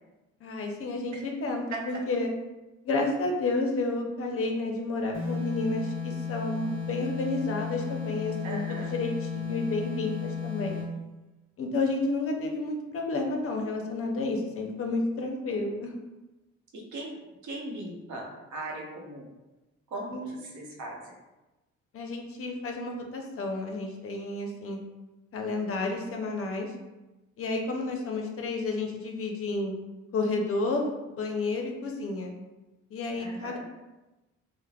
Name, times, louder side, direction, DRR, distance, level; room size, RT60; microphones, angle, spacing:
voice 1, 0.4-2.3 2.8-10.8 11.6-15.9 20.1-20.2 21.9-24.8 25.3-26.7 27.4-29.7 30.1-32.3 32.9-33.6, left 2 dB, 50° left, 2 dB, 0.5 m, -31 dB
sound 1, 5.1-11.0, left 6 dB, 40° right, 1.2 m, -34 dB
voice 2, 8.4-9.0 16.7-17.1 17.4-19.3 19.9-21.0 33.1-33.6, right 2 dB, 75° right, -1 dB, 0.7 m, -38 dB
3.2 x 2.0 x 2.2 m, 1.1 s
cardioid pair, 90°, 30 cm